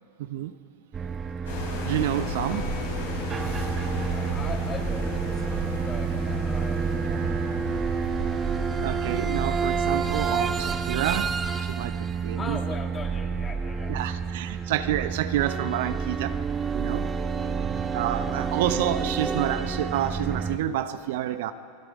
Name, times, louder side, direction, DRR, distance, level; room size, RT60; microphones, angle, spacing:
voice 1, 0.2-0.5 1.8-2.6 8.8-11.3 11.7-12.0 12.2-12.6 13.9-16.3 16.7-17.1 17.9-21.5, right 12 dB, 65° right, 11 dB, 0.8 m, -28 dB
sound 1, 0.9-20.6, right 6 dB, 25° right, 1.1 m, -29 dB
sound 2, 1.4-10.7, left 3 dB, 75° left, 6.8 m, -35 dB
voice 2, 2.0-3.4 3.9-8.6 12.3-14.6 18.1-18.6, left 4 dB, 25° left, 3 dB, 2.5 m, -41 dB
28.5 x 20.0 x 5.3 m, 2.7 s
hypercardioid pair, 90°, 0 cm